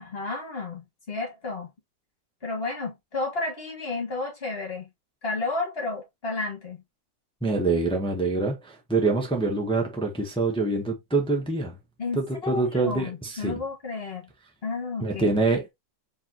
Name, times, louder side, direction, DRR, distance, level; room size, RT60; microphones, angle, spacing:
voice 1, 0.0-1.7 2.4-4.9 5.2-6.8 12.0-14.3 14.6-15.4, left 3 dB, 35° left, 2.0 m, -32 dB
voice 2, 7.4-11.8 12.1-13.6 15.0-15.7, right 3 dB, 5° left, 0.8 m, -25 dB
4.9 x 3.5 x 2.9 m
omnidirectional pair, 1.9 m